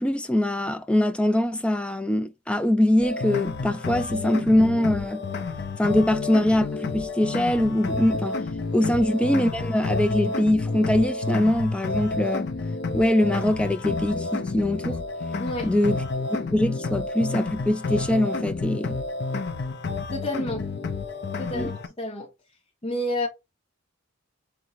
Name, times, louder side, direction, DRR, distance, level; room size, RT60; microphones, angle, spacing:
voice 1, 0.0-5.2 5.8-8.4 8.7-12.5 12.9-15.0 15.6-16.0 16.5-19.0 21.5-21.7, left 1 dB, 5° left, 0.3 m, -23 dB
sound 1, 3.0-21.9, left 3 dB, 55° left, 0.5 m, -30 dB
voice 2, 15.4-15.7 20.1-20.7 21.4-22.3 22.8-23.3, left 1 dB, 30° left, 1.1 m, -29 dB
3.5 x 3.0 x 4.1 m
head